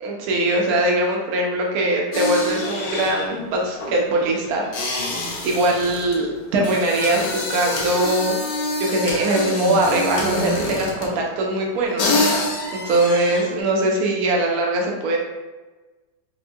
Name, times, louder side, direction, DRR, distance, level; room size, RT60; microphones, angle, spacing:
voice 1, 0.0-5.0 5.4-8.3 8.8-12.4 12.7-15.2, right 2 dB, 70° right, 0 dB, 1.0 m, -21 dB
sound 1, 2.1-11.3 11.7-11.8 12.0-13.6, left 2 dB, 70° left, 0.9 m, -26 dB
4.3 x 2.1 x 2.2 m, 1.2 s
omnidirectional pair, 2.0 m